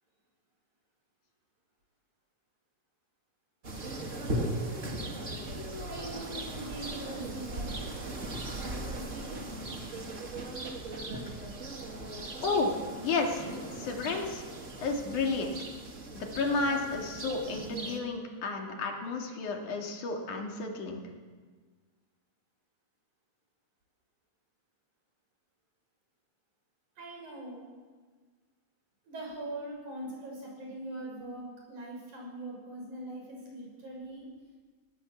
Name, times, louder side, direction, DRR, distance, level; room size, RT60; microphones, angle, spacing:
sound 1, 3.6-18.0, right 1 dB, 30° right, 2.0 m, -38 dB
voice 1, 5.9-7.9 8.6-9.4 27.0-27.6 29.1-34.3, right 1 dB, 80° right, -1 dB, 7.9 m, -42 dB
voice 2, 12.4-14.4 14.8-15.5 16.2-21.0, left 3 dB, 90° left, 1 dB, 4.0 m, -32 dB
19.5 x 19.0 x 7.4 m, 1.5 s
omnidirectional pair, 3.4 m